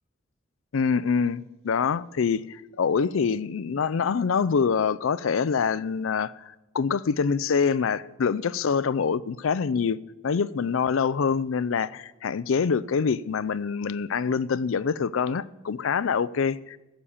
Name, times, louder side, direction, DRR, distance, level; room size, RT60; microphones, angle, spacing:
voice 1, 0.7-16.8, left 6 dB, 85° left, 0.4 m, -25 dB
16.0 x 7.0 x 7.1 m
head